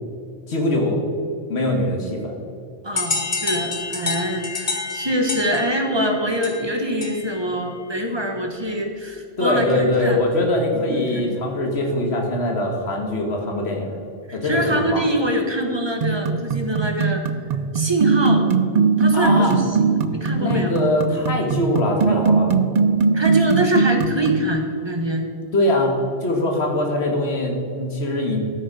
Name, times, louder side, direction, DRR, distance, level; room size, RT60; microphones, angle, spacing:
voice 1, 0.5-1.0 1.5-2.3 9.4-14.0 14.3-15.0 19.1-19.5 20.2-22.5 25.5-25.9 26.2-28.4, left 1 dB, 75° left, 1 dB, 1.8 m, -22 dB
voice 2, 2.8-10.2 10.7-11.2 14.3-17.2 17.7-18.5 19.0-20.7 23.1-25.2, equal, 25° right, 2 dB, 1.2 m, -24 dB
sound 1, 3.0-7.5, left 3 dB, 35° left, 1.2 m, -28 dB
sound 2, 16.0-24.5, right 5 dB, 55° right, 0.5 m, -20 dB
13.0 x 6.6 x 4.8 m, 2.6 s
omnidirectional pair, 1.1 m